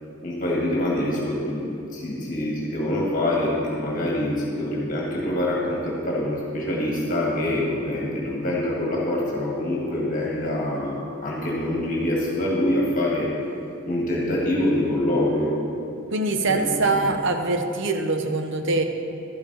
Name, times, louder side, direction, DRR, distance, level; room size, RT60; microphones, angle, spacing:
voice 1, 0.2-13.3 13.8-15.6 16.5-17.2, left 1 dB, 40° left, -4 dB, 1.7 m, -25 dB
voice 2, 16.1-18.8, right 3 dB, 65° right, 5 dB, 0.9 m, -23 dB
12.0 x 10.0 x 3.9 m, 2.6 s
head